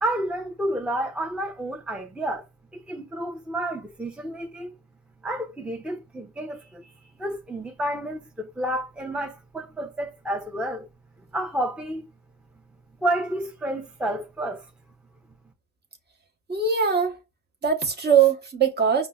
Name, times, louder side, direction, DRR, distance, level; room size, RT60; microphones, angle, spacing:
voice 1, 0.0-2.4 2.7-4.7 5.2-6.9 7.2-10.9 11.3-12.0 13.0-14.6, right 1 dB, 5° right, 0.5 m, -30 dB
voice 2, 16.5-17.2 17.6-19.1, right 7 dB, 35° right, 0.9 m, -21 dB
5.2 x 2.0 x 2.2 m
cardioid pair, 90°, 30 cm